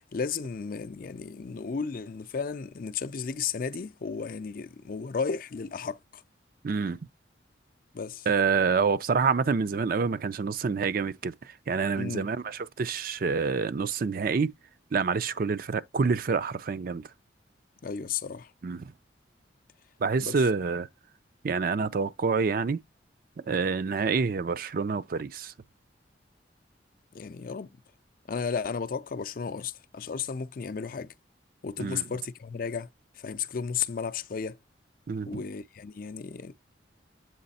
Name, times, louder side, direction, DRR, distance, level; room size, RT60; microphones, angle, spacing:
voice 1, 0.0-6.2 7.9-8.3 12.0-12.3 17.8-18.5 20.2-20.4 27.1-27.7 28.3-31.1 31.6-32.9 33.2-34.6 35.3-36.5, left 5 dB, 50° left, 0.4 m, -34 dB
voice 2, 6.6-7.0 8.3-11.3 11.7-14.5 14.9-17.0 18.6-18.8 20.0-20.9 21.4-22.8 23.5-25.5 31.8-32.0 35.1-35.4, right 5 dB, 50° right, 0.4 m, -27 dB
7.8 x 3.2 x 4.1 m
head